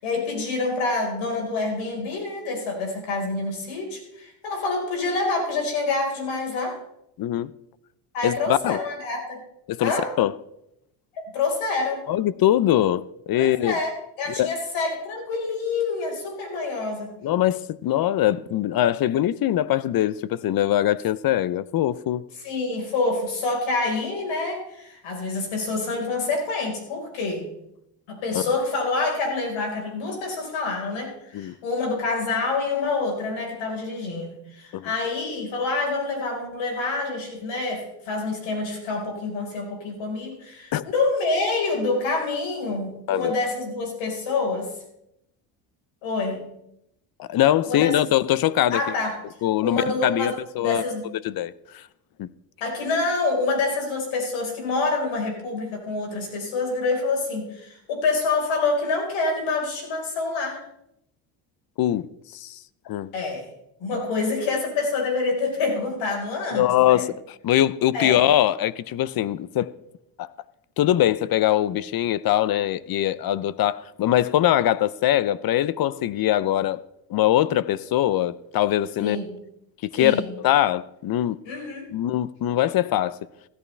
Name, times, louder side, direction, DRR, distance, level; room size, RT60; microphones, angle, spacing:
voice 1, 0.0-6.8 8.1-9.4 9.8-10.1 11.2-12.0 13.3-13.9 14.2-17.1 22.4-27.5 28.1-44.7 46.0-46.4 47.7-47.9 48.7-49.2 49.6-50.3 50.6-51.1 52.6-60.6 63.1-63.5 63.8-67.0 67.9-68.3 79.0-79.3 79.9-80.3 81.4-81.9, left 3 dB, 75° left, 4.7 m, -27 dB
voice 2, 7.2-7.5 8.2-8.8 9.7-9.9 10.2-10.3 12.1-13.7 14.4-14.5 17.2-22.2 28.3-28.4 31.3-31.6 34.7-34.9 40.7-40.8 43.1-43.3 47.2-48.8 49.4-50.8 51.2-51.8 52.2-52.3 61.8-62.1 62.3-62.6 62.9-63.1 66.5-69.7 70.2-70.3 70.8-76.8 77.1-79.2 79.8-81.4 81.9-83.2, left 12 dB, 50° left, 0.6 m, -22 dB
16.0 x 11.0 x 3.4 m
supercardioid pair, 90°, 47 cm